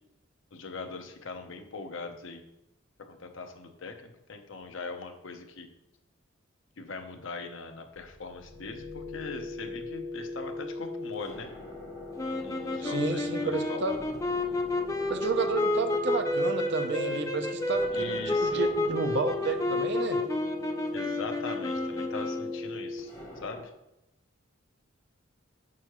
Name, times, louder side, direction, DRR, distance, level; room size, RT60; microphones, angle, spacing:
voice 1, 0.5-2.4 3.1-5.7 6.8-11.5 12.3-13.8 17.9-18.6 20.9-23.7, left 4 dB, 65° left, 5 dB, 0.7 m, -41 dB
sound 1, 7.9-23.6, left 3 dB, 30° left, 1.5 m, -40 dB
sound 2, 12.2-22.7, left 2 dB, 15° left, 0.4 m, -30 dB
voice 2, 12.8-14.1 15.1-20.2, right 4 dB, 55° right, 6 dB, 0.6 m, -31 dB
6.2 x 5.6 x 3.0 m, 0.88 s
head